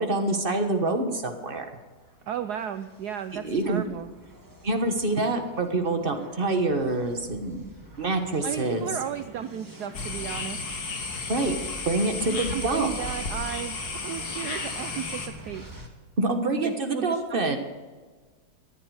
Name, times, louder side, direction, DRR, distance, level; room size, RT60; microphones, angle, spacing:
voice 1, 0.0-1.6 3.4-3.8 4.6-7.6 8.0-8.8 11.3-11.6 11.8-12.9 16.2-17.6, right 2 dB, 30° right, 5 dB, 1.2 m, -26 dB
sound 1, 1.6-15.9, equal, 10° right, 1.4 m, -46 dB
voice 2, 2.3-4.1 8.4-10.8 12.3-15.7 16.6-17.6, right 9 dB, 80° right, 10 dB, 0.9 m, -35 dB
sound 2, 9.9-15.3, left 4 dB, 50° left, 2.1 m, -33 dB
14.5 x 11.0 x 4.9 m, 1.4 s
omnidirectional pair, 2.3 m